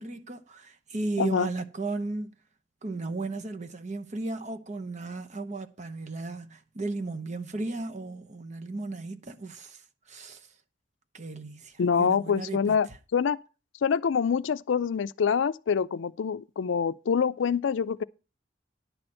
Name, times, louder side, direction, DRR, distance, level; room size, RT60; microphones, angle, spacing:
voice 1, 0.0-2.3 2.8-9.8 10.1-10.4 11.1-12.8, right 3 dB, 40° right, 0.9 m, -35 dB
voice 2, 1.2-1.5 11.8-13.4 13.8-18.0, left 6 dB, 85° left, 0.4 m, -26 dB
10.5 x 4.4 x 7.6 m
head